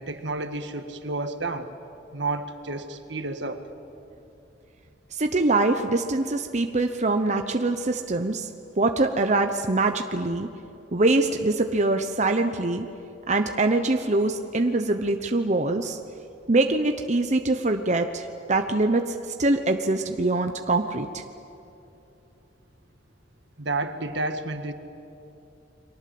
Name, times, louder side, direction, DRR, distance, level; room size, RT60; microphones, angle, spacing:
voice 1, 0.0-1.7 2.1-3.7 23.6-24.7, right 2 dB, 75° right, 7 dB, 1.8 m, -30 dB
voice 2, 5.1-8.5 8.8-10.5 10.9-12.9 13.3-16.0 16.5-21.2, right 2 dB, 40° right, 6 dB, 0.9 m, -24 dB
30.0 x 23.5 x 7.8 m, 3.0 s
head